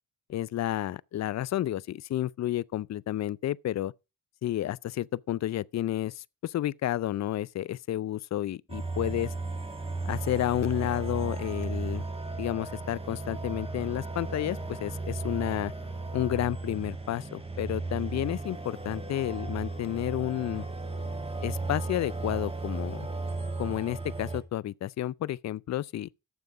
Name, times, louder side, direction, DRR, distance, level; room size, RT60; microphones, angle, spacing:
voice 1, 0.3-3.9 4.4-9.3 10.1-12.0 12.4-15.7 16.1-20.6 21.4-23.1 23.6-26.1, left 13 dB, 50° left, 0.5 m, -31 dB
sound 1, 8.7-24.4, right 3 dB, 15° right, 2.1 m, -35 dB
9.6 x 7.1 x 4.7 m
supercardioid pair, 50°, 37 cm